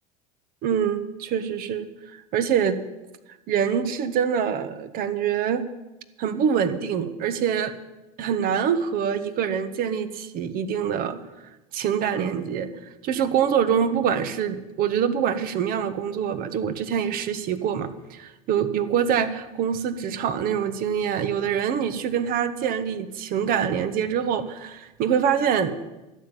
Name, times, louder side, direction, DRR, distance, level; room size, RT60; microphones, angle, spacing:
voice 1, 0.6-1.9 2.3-2.8 3.5-5.6 6.2-7.7 8.2-11.2 11.7-12.7 13.0-25.8, right 8 dB, 50° right, 11 dB, 1.2 m, -25 dB
12.0 x 7.3 x 9.1 m, 1.0 s
hypercardioid pair, 95°, 19 cm